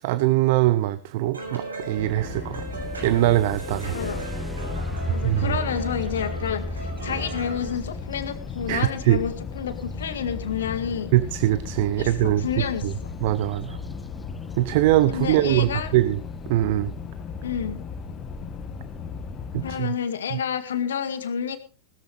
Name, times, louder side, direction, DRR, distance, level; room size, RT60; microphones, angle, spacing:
voice 1, 0.0-4.0 5.2-5.6 8.7-9.2 11.1-12.9 13.2-13.8 14.6-16.2 16.5-16.9 19.5-19.9 20.3-20.4, right 15 dB, 50° right, 14 dB, 0.8 m, -22 dB
sound 1, 1.3-7.8, right 3 dB, 75° right, 7.0 m, -37 dB
sound 2, 2.0-19.8, left 4 dB, 30° left, 1.5 m, -36 dB
sound 3, 2.9-10.7 12.8-12.9 13.4-13.9 14.5-14.6 15.1-15.5, equal, ahead, 0.9 m, -36 dB
voice 2, 3.9-4.3 5.1-11.1 12.0-13.1 15.1-15.9 17.4-17.9 19.6-21.6, left 8 dB, 65° left, 10 dB, 1.9 m, -30 dB
19.5 x 13.5 x 3.3 m, 0.35 s
figure-of-eight pair, 90°, 0 cm